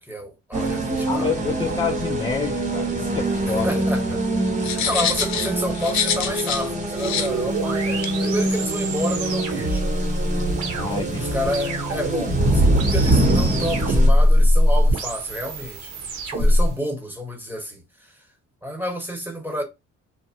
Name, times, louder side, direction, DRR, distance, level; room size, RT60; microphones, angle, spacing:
voice 1, 0.0-1.3 3.6-4.2 4.6-9.9 10.9-15.9 16.2-18.3 18.6-19.6, equal, 5° right, 1.1 m, -30 dB
sound 1, 0.5-14.1, right 1 dB, 25° right, 0.9 m, -24 dB
voice 2, 1.0-3.8 4.7-4.8 10.7-11.4, left 6 dB, 15° left, 0.4 m, -28 dB
sound 2, 4.6-6.7 7.0-7.3 8.0-8.1, left 7 dB, 65° left, 0.7 m, -25 dB
sound 3, 7.0-16.7, equal, 75° right, 1.0 m, -22 dB
2.9 x 2.1 x 2.8 m
cardioid pair, 90°, 30 cm